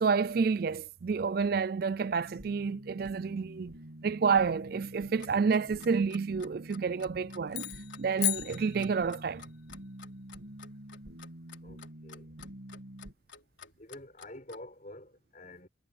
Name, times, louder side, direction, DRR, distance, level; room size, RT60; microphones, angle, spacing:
voice 1, 0.0-3.7 4.0-7.7 8.0-9.4, right 5 dB, 50° right, 0.4 m, -29 dB
sound 1, 2.2-13.1, right 1 dB, 85° right, 2.0 m, -47 dB
Clock, 5.0-14.7, left 6 dB, 75° left, 3.5 m, -52 dB
sound 2, 7.5-9.4, left 14 dB, 55° left, 1.1 m, -35 dB
voice 2, 11.6-12.3 13.8-15.7, left 1 dB, 40° left, 6.5 m, -48 dB
head